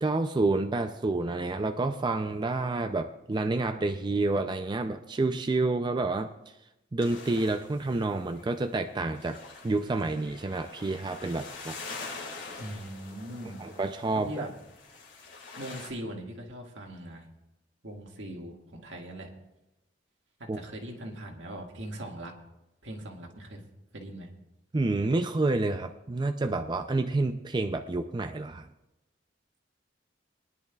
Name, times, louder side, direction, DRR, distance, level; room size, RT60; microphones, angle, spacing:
voice 1, 0.0-6.3 6.9-11.8 13.6-14.5 20.5-20.6 24.7-28.7, right 2 dB, 25° right, 7 dB, 0.4 m, -29 dB
sound 1, 7.0-15.9, left 4 dB, 80° left, 2.1 m, -45 dB
voice 2, 12.6-13.6 14.1-14.5 15.6-17.3 17.8-19.3 20.4-22.3 22.8-23.6 23.9-24.3, right 1 dB, 80° right, 1 dB, 1.9 m, -40 dB
22.5 x 10.5 x 2.3 m, 0.94 s
head